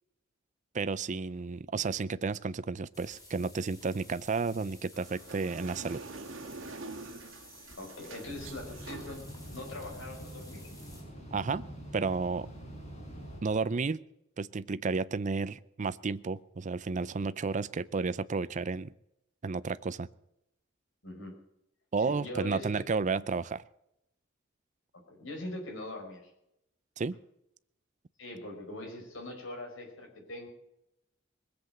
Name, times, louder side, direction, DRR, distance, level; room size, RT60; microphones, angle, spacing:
voice 1, 0.7-6.0 11.3-11.7 11.9-12.5 13.4-14.0 14.4-18.9 19.4-20.1 21.9-23.6 27.0-27.2, right 4 dB, 40° right, 16 dB, 0.5 m, -32 dB
sound 1, 2.9-11.0, left 1 dB, 20° left, 5.0 m, -54 dB
sound 2, 4.9-10.2, right 3 dB, 65° right, 1.7 m, -46 dB
voice 2, 7.7-10.6 21.0-21.3 22.0-22.8 25.1-26.3 28.2-30.5, left 2 dB, 65° left, 2 dB, 4.8 m, -42 dB
sound 3, 8.2-13.4, equal, 35° left, 4.5 m, -45 dB
20.5 x 8.0 x 7.7 m, 0.83 s
head